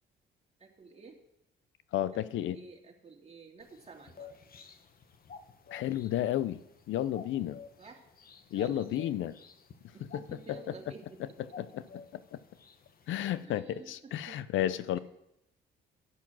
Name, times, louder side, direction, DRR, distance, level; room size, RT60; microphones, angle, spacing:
voice 1, 0.6-1.2 2.1-4.3 7.8-8.1 8.5-9.2 9.9-11.2 13.4-14.4 14.9-15.0, right 4 dB, 30° right, 1 dB, 2.4 m, -51 dB
voice 2, 1.9-2.6 5.7-6.6 6.9-7.6 8.5-9.3 10.1-10.2 11.6-11.8 12.1-12.4 13.1-15.0, left 12 dB, 80° left, 16 dB, 0.6 m, -32 dB
sound 1, 3.6-13.4, left 5 dB, 50° left, 1.1 m, -53 dB
12.0 x 6.0 x 7.5 m, 0.83 s
cardioid pair, 90°, 20 cm